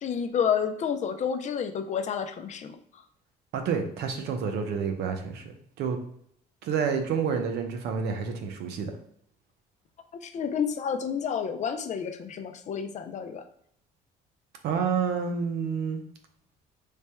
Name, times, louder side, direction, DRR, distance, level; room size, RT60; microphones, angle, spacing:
voice 1, 0.0-2.8 10.2-13.4, left 7 dB, 45° left, 7 dB, 0.5 m, -30 dB
voice 2, 3.5-5.4 5.8-6.0 6.6-8.9 14.6-16.0, right 6 dB, 75° right, 5 dB, 0.7 m, -29 dB
3.3 x 2.2 x 4.2 m, 0.67 s
cardioid pair, 110°, 17 cm